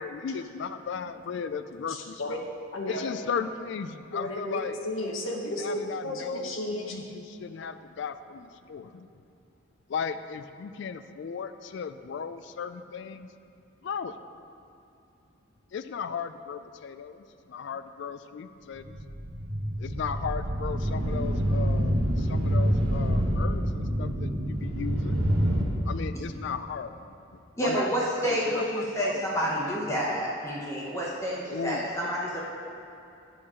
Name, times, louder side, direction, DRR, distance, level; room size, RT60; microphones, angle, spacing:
voice 1, 0.0-2.5 2.9-4.7 5.6-6.5 6.9-9.1 9.9-13.3 13.8-14.2 15.7-19.0 19.8-25.2 25.9-27.0 27.6-27.9 28.2-29.8 31.5-31.9, left 6 dB, 55° left, 11 dB, 0.3 m, -36 dB
voice 2, 1.9-2.4 2.7-3.1 4.1-7.0, left 1 dB, 75° left, 1 dB, 0.8 m, -33 dB
sound 1, 18.8-25.6, equal, 85° right, 1.1 m, -27 dB
voice 3, 27.6-32.4, equal, 15° left, -6 dB, 0.9 m, -29 dB
10.0 x 5.7 x 4.9 m, 2.7 s
head